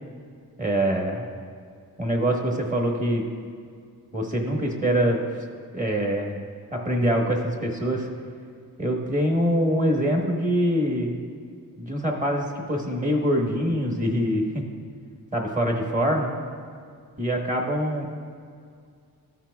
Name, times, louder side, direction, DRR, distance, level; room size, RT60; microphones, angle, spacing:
voice 1, 0.6-1.2 2.0-3.3 4.1-5.2 5.7-6.4 6.7-8.1 8.8-11.1 11.8-14.6 15.3-16.3 17.2-18.1, equal, 20° right, 1 dB, 1.1 m, -24 dB
14.0 x 5.8 x 2.3 m, 2.2 s
wide cardioid pair, 125°, 36 cm